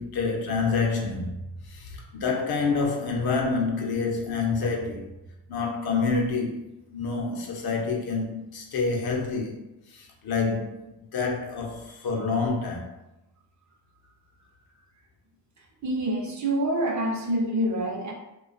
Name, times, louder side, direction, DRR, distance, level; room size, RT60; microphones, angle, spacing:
voice 1, 0.0-5.1 5.5-6.6 6.9-9.6 9.9-13.0, left 4 dB, 55° left, 0.7 m, -28 dB
voice 2, 15.8-18.1, right 1 dB, 40° right, 0.6 m, -26 dB
2.4 x 2.2 x 2.4 m
cardioid pair, 70°, 43 cm